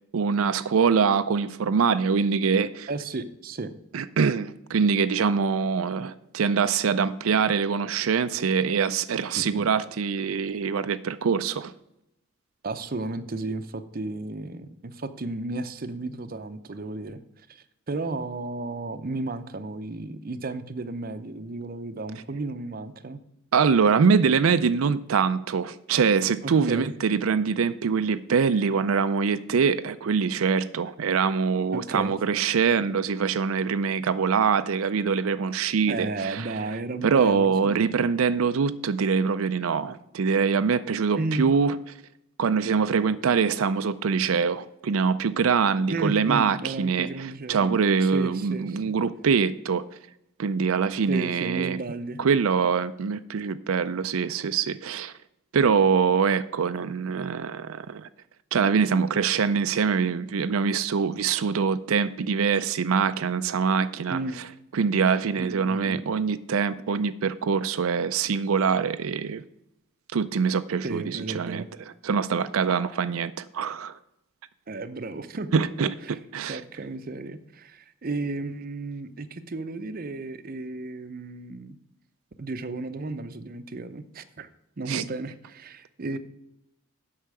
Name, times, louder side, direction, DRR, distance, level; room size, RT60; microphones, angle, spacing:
voice 1, 0.1-2.9 3.9-11.7 23.5-36.6 37.0-41.7 42.4-49.8 50.4-51.8 52.2-55.1 55.5-58.1 58.5-64.2 64.7-69.4 70.1-71.6 72.0-73.9 75.5-75.9 76.3-76.6 84.9-85.0, right 6 dB, 90° right, 0.5 m, -24 dB
voice 2, 2.9-3.7 9.3-9.7 12.6-17.2 17.5-23.2 26.4-26.9 31.7-32.1 35.9-37.9 41.1-41.5 45.9-47.7 48.0-48.8 51.1-52.2 64.1-64.4 65.4-66.0 70.8-71.7 74.7-76.2 76.5-81.8 82.4-84.5 84.8-86.2, right 2 dB, 45° right, 0.6 m, -33 dB
8.2 x 5.7 x 7.6 m
head